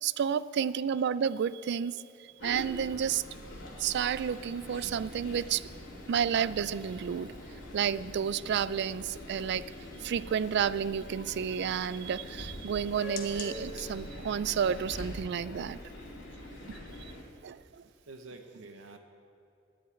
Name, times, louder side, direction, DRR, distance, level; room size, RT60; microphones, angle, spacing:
voice 1, 0.0-2.0 2.4-3.2 3.8-5.7 6.1-7.3 7.7-9.6 10.0-15.8 17.0-17.1 17.4-17.6, right 8 dB, 55° right, 17 dB, 0.3 m, -31 dB
sound 1, 2.4-17.2, left 1 dB, 70° left, 2.5 m, -44 dB
sound 2, 3.0-13.9, left 4 dB, 45° left, 1.2 m, -53 dB
voice 2, 16.6-17.4 17.9-19.0, right 3 dB, 75° right, 4 dB, 0.9 m, -51 dB
10.5 x 7.9 x 9.1 m, 2.7 s
head